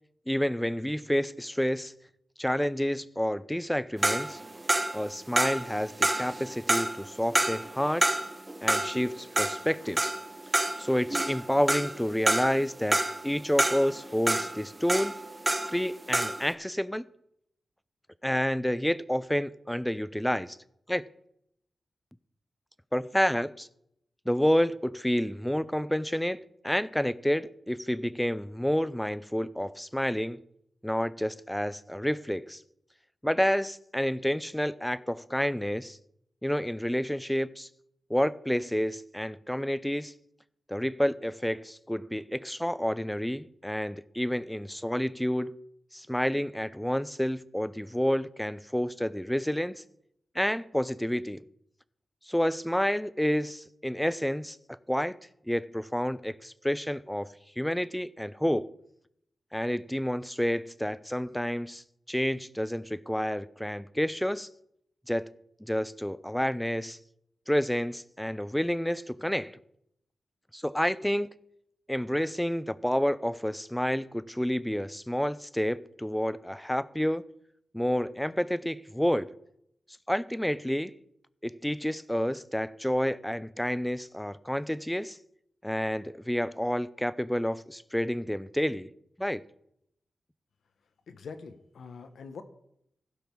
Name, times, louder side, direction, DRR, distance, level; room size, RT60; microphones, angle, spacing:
voice 1, 0.3-1.9 2.4-4.4 4.9-8.2 8.6-10.1 10.8-15.2 15.6-17.0 18.2-20.6 20.9-21.0 22.9-23.7 24.3-26.4 26.6-30.4 30.8-32.6 33.2-36.0 36.4-37.7 38.1-40.1 40.7-45.6 45.9-49.8 50.3-51.4 52.3-55.1 55.5-58.7 59.5-64.5 65.1-65.3 65.6-67.0 67.5-69.6 70.5-71.3 71.9-77.2 77.7-79.3 80.1-80.9 81.4-85.2 85.6-88.9 89.2-89.4, equal, 5° left, 0.5 m, -29 dB
sound 1, 4.0-16.5, right 1 dB, 20° right, 1.1 m, -28 dB
voice 2, 91.1-92.4, left 5 dB, 85° left, 0.9 m, -44 dB
16.0 x 5.4 x 4.6 m
cardioid pair, 60°, 0 cm